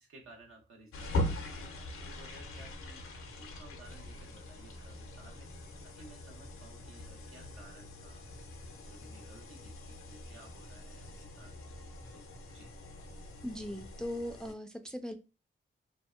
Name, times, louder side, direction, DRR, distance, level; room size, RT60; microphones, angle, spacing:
voice 1, 0.0-8.2 8.8-11.5 12.1-12.2 12.5-12.7, right 2 dB, 80° right, 0.9 m, -56 dB
sound 1, 0.9-14.5, left 1 dB, 90° left, 0.5 m, -42 dB
voice 2, 13.4-15.1, left 1 dB, 5° left, 0.3 m, -39 dB
2.6 x 2.1 x 2.3 m
cardioid pair, 70°, 21 cm